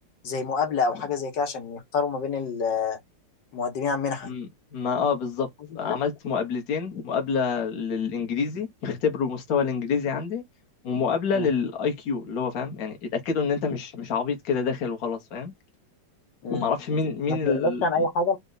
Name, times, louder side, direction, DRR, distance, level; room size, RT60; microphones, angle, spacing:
voice 1, 0.2-3.0 3.5-4.3 5.9-6.0 11.3-11.5 16.4-16.7 17.3-18.4, left 4 dB, 75° left, 1.8 m, -27 dB
voice 2, 4.7-5.5 5.7-10.4 10.8-15.5 16.5-17.8, left 5 dB, 55° left, 1.4 m, -27 dB
4.2 x 2.3 x 3.8 m
omnidirectional pair, 1.9 m